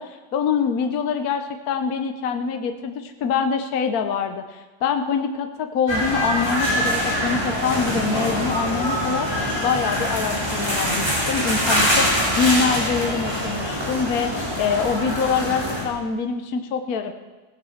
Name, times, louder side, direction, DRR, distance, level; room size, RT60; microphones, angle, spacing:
voice 1, 0.0-9.3 9.6-17.1, left 6 dB, 60° left, 7 dB, 1.3 m, -25 dB
sound 1, 5.9-15.8, equal, 15° right, 4.9 m, -24 dB
17.0 x 10.5 x 7.1 m, 1.2 s
omnidirectional pair, 1.8 m